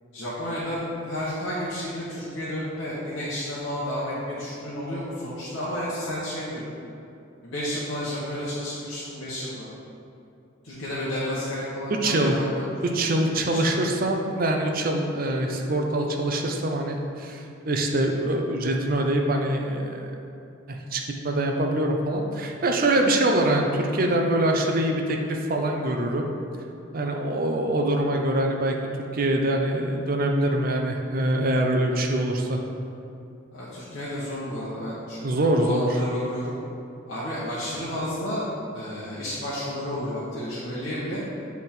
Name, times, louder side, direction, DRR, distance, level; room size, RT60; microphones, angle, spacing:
voice 1, 0.1-6.6 7.4-9.7 10.6-12.6 13.5-13.7 31.9-32.0 33.5-36.6 37.1-38.5 38.7-41.2, left 1 dB, 60° left, -10 dB, 1.1 m, -31 dB
voice 2, 12.0-12.4 12.9-20.0 20.7-26.3 26.9-32.6 35.2-36.0, right 1 dB, 45° right, 2 dB, 0.6 m, -24 dB
8.0 x 3.5 x 4.4 m, 2.7 s
head